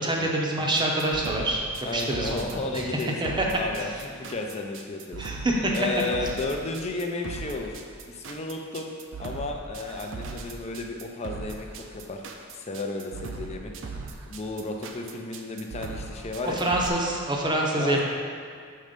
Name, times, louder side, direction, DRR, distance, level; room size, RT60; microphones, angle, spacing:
voice 1, 0.0-1.6 1.9-3.5 5.2-5.8 16.4-18.0, right 1 dB, 20° right, -1 dB, 0.7 m, -26 dB
sound 1, 0.8-16.9, right 4 dB, 65° right, 0.5 m, -39 dB
voice 2, 1.8-5.3 5.7-7.7 8.1-8.9 9.2-12.2 12.6-13.9 14.2-16.6 17.8-18.0, left 2 dB, 30° left, 2 dB, 0.5 m, -33 dB
6.5 x 3.2 x 5.2 m, 2.2 s
head